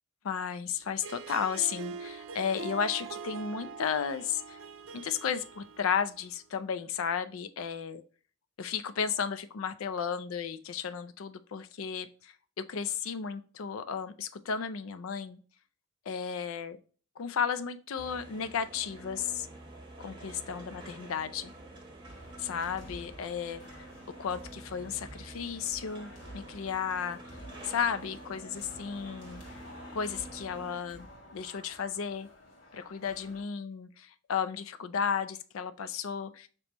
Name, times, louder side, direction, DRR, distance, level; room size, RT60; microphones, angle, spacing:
voice 1, 0.2-4.6 4.9-8.0 8.6-15.4 16.1-16.8 17.2-19.5 20.0-21.5 22.4-23.9 24.2-27.2 27.6-29.6 29.9-31.1 31.3-32.3 32.7-36.5, left 7 dB, 80° left, 12 dB, 0.4 m, -34 dB
Harp, 0.9-6.3, right 5 dB, 70° right, 0.5 m, -43 dB
sound 1, 18.0-30.8, right 1 dB, 20° right, 1.0 m, -48 dB
sound 2, 22.0-33.4, equal, 65° left, 1.7 m, -51 dB
5.2 x 2.9 x 2.9 m, 0.39 s
head